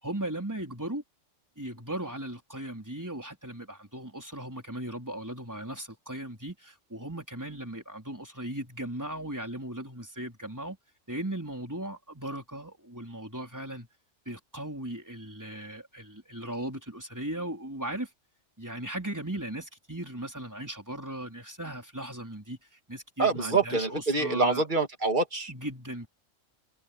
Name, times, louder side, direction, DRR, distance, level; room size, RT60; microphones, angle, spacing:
voice 1, 0.0-1.0 1.6-10.8 11.1-13.9 14.3-18.1 18.6-24.6 25.5-26.1, right 1 dB, 15° right, 4.4 m, -37 dB
voice 2, 23.2-25.5, right 3 dB, 40° right, 3.1 m, -26 dB
omnidirectional pair, 1.3 m